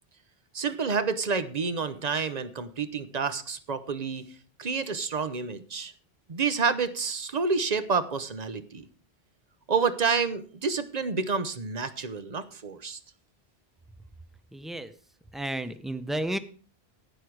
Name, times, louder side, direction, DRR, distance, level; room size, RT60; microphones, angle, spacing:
voice 1, 0.5-4.3 4.6-5.9 6.3-8.8 9.7-13.0, right 5 dB, 45° right, 12 dB, 0.9 m, -29 dB
voice 2, 14.5-14.9 15.3-16.4, right 1 dB, ahead, 11 dB, 0.5 m, -32 dB
11.0 x 9.1 x 4.7 m, 0.41 s
omnidirectional pair, 1.1 m